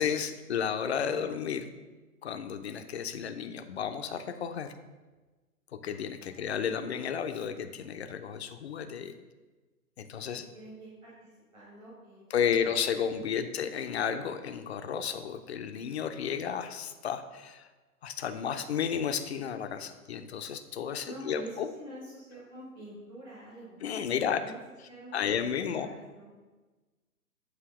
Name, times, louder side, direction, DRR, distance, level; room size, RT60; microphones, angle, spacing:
voice 1, 0.0-1.7 2.2-4.7 5.8-9.1 10.0-10.5 12.3-17.7 18.0-21.7 23.8-24.4 25.1-25.9, left 7 dB, 45° left, 8 dB, 0.4 m, -32 dB
voice 2, 6.2-6.6 10.4-12.5 13.1-13.5 18.5-18.6 21.0-24.1 24.4-24.6 24.9-26.3, right 1 dB, 10° right, -8 dB, 0.9 m, -47 dB
7.8 x 2.8 x 4.7 m, 1.3 s
hypercardioid pair, 140°, 46 cm